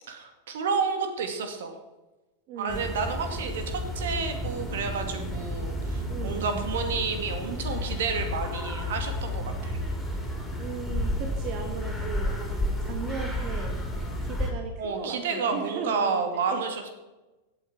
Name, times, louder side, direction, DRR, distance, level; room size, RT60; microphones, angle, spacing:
voice 1, 0.1-1.7 2.6-9.8 14.8-16.9, right 5 dB, 60° right, 6 dB, 2.2 m, -30 dB
voice 2, 2.5-2.9 6.1-6.7 10.6-13.8 14.2-16.6, right 6 dB, 40° right, 5 dB, 1.6 m, -37 dB
sound 1, 2.7-14.5, left 1 dB, 5° left, 4.4 m, -31 dB
16.0 x 8.6 x 6.1 m, 1.1 s
figure-of-eight pair, 90°, 0 cm